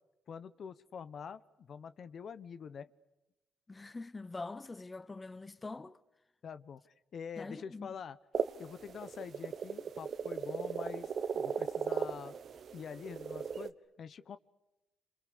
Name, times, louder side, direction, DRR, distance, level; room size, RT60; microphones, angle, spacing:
voice 1, 0.3-2.9 6.4-8.2 8.6-12.4 12.7-14.4, left 7 dB, 55° left, 1.1 m, -46 dB
voice 2, 3.7-6.0 7.4-7.9, left 3 dB, 20° left, 1.0 m, -44 dB
sound 1, 8.3-13.7, right 7 dB, 55° right, 1.2 m, -37 dB
29.5 x 27.5 x 6.7 m
cardioid pair, 90°, 0 cm